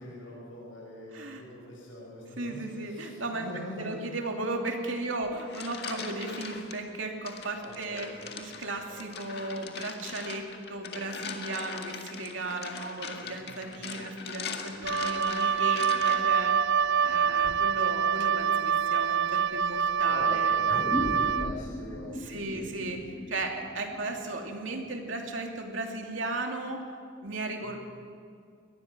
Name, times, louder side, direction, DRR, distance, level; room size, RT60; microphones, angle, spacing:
voice 1, 0.0-4.0 7.5-8.3 8.9-9.0 13.0-13.8 14.7-15.0 17.6-17.7 20.0-20.7 20.9-22.7 27.6-27.8, left 1 dB, 80° left, -6 dB, 5.9 m, -44 dB
voice 2, 1.1-1.4 2.4-3.5 3.8-8.1 8.4-16.6 17.0-20.6 22.2-23.0 23.3-26.8 27.2-27.8, right 2 dB, 85° right, 2 dB, 2.8 m, -35 dB
sound 1, 5.2-6.8 7.3-16.4, left 5 dB, 55° left, 1.9 m, -40 dB
Wind instrument woodwind instrument, 14.8-21.5, right 7 dB, 65° right, 0.5 m, -26 dB
sound 2, 20.7-25.5, equal, 15° left, 1.2 m, -37 dB
23.5 x 19.5 x 6.2 m, 2.3 s
head